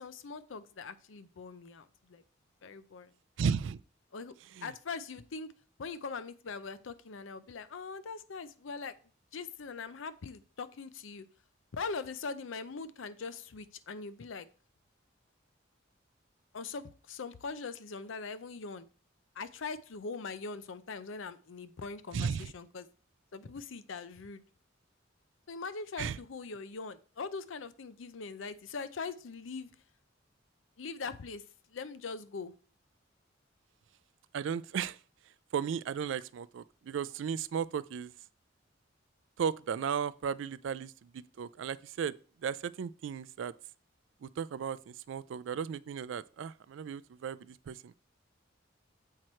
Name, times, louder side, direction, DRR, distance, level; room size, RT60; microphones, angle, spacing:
voice 1, 0.0-2.2 2.6-3.1 4.1-4.4 4.6-5.5 5.8-8.9 9.3-11.3 11.7-14.5 16.5-18.9 19.3-22.9 23.3-24.4 25.5-29.7 30.8-32.5, left 4 dB, 85° left, 0.6 m, -41 dB
voice 2, 3.4-3.8 4.6-4.7 22.1-22.5 26.0-26.2 34.3-35.0 35.5-38.1 39.4-42.2 42.4-43.5 44.2-47.9, right 7 dB, 70° right, 0.3 m, -35 dB
7.6 x 4.6 x 4.3 m
head